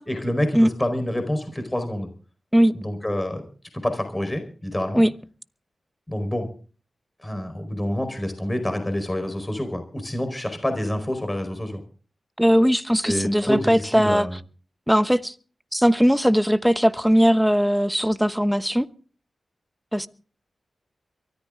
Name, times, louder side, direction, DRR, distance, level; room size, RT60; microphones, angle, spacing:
voice 1, 0.1-2.1 2.7-3.4 3.7-5.0 6.1-6.5 7.2-11.8 13.0-14.4, left 1 dB, 20° left, 4.6 m, -27 dB
voice 2, 12.4-14.3 14.9-15.3 15.7-18.9 19.9-20.1, equal, ahead, 1.0 m, -19 dB
23.5 x 13.5 x 3.8 m
cardioid pair, 50°, 0 cm